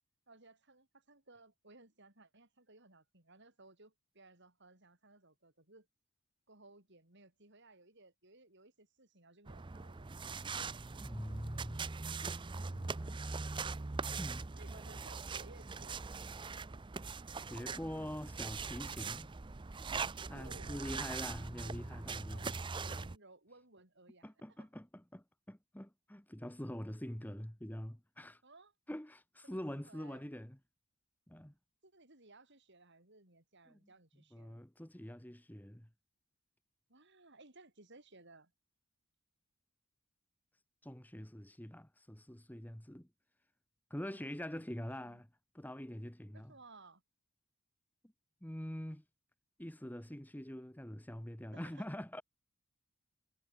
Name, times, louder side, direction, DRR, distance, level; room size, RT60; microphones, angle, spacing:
voice 1, 0.3-5.9 6.5-10.4 14.6-16.1 20.3-21.1 21.6-21.9 22.3-24.7 28.4-28.7 29.4-30.2 31.8-34.7 36.9-38.5 44.1-45.2 46.3-47.0 51.5-51.8, right 2 dB, 55° right, 6.9 m, -60 dB
sound 1, 9.5-23.2, right 4 dB, 20° right, 0.5 m, -42 dB
voice 2, 11.0-11.8 12.7-13.2 14.2-14.5 17.5-19.3 20.3-22.6 24.2-28.4 28.9-30.6 31.3-31.5 33.7-33.8 34.3-35.9 40.8-43.1 43.9-45.3 45.5-46.5 48.4-49.0 49.6-52.2, equal, 10° left, 1.3 m, -45 dB
head